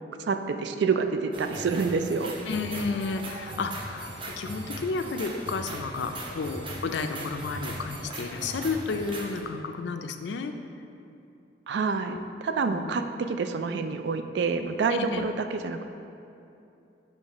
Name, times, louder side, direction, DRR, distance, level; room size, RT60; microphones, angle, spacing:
voice 1, 0.2-2.3 11.7-15.9, right 4 dB, 70° right, 8 dB, 0.3 m, -28 dB
sound 1, 1.3-9.4, right 1 dB, 30° right, 0.6 m, -39 dB
voice 2, 2.5-10.5 12.1-12.3 12.6-12.9 14.9-15.3, left 4 dB, 75° left, 7 dB, 0.4 m, -32 dB
6.5 x 3.2 x 5.2 m, 2.7 s
head